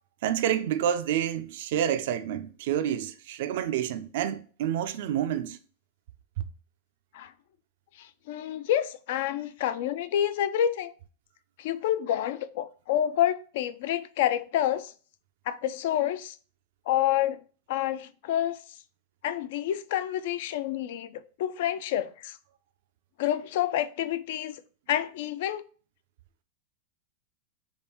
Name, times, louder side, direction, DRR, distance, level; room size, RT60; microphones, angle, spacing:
voice 1, 0.2-5.6, right 10 dB, 65° right, 0.3 m, -28 dB
voice 2, 8.0-10.9 11.6-14.9 15.5-16.4 16.9-17.4 17.7-18.6 19.2-22.4 23.2-24.6 24.9-25.6, left 11 dB, 65° left, 0.3 m, -28 dB
3.5 x 2.2 x 4.3 m
hypercardioid pair, 125°, 0 cm